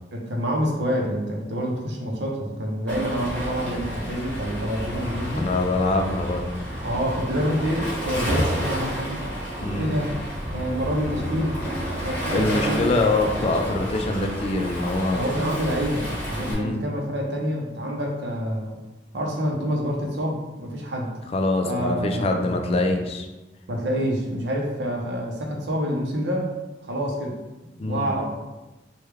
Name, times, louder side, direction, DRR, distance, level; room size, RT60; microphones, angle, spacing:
voice 1, 0.1-5.5 6.8-9.2 9.6-10.1 10.5-11.6 12.0-12.8 15.1-18.8 19.1-21.1 21.6-22.4 23.7-26.5 26.8-28.3, equal, 80° right, 0 dB, 0.7 m, -27 dB
Waves surf, 2.9-16.5, equal, 10° left, 1.0 m, -30 dB
voice 2, 5.4-6.5 9.6-10.0 12.3-15.2 16.4-16.8 21.3-23.3 27.8-28.1, left 2 dB, 35° left, 3 dB, 0.3 m, -24 dB
3.2 x 2.3 x 3.3 m, 1.1 s
head